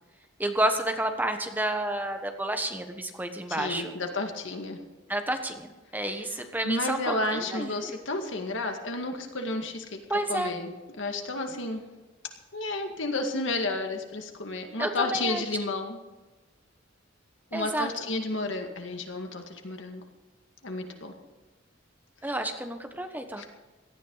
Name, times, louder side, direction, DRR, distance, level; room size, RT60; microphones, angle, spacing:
voice 1, 0.4-3.9 5.1-7.9 10.1-10.5 14.8-15.4 17.5-17.9 22.2-23.4, right 1 dB, 10° right, 6 dB, 1.2 m, -30 dB
voice 2, 3.5-4.8 6.6-10.0 10.3-10.7 11.0-11.8 12.5-16.0 17.5-20.0 20.6-21.1 23.4-23.5, left 2 dB, 75° left, 4 dB, 2.1 m, -31 dB
18.0 x 13.0 x 4.1 m, 1.2 s
head